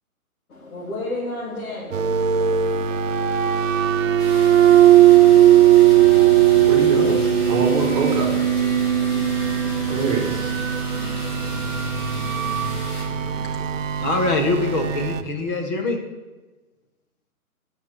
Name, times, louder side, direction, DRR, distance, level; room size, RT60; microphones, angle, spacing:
voice 1, 0.5-3.5, left 2 dB, 70° left, -6 dB, 3.3 m, -33 dB
sound 1, 1.9-15.2, right 11 dB, 60° right, 1.0 m, -18 dB
sound 2, 4.2-13.1, left 2 dB, 40° left, 2.9 m, -38 dB
sound 3, 5.9-13.8, right 2 dB, 45° right, 1.8 m, -36 dB
voice 2, 6.6-8.3 9.9-10.5, right 4 dB, 25° right, 0 dB, 3.4 m, -24 dB
voice 3, 14.0-16.0, left 3 dB, 15° left, 3 dB, 0.7 m, -23 dB
9.2 x 6.4 x 7.8 m, 1.2 s
hypercardioid pair, 155°, 44 cm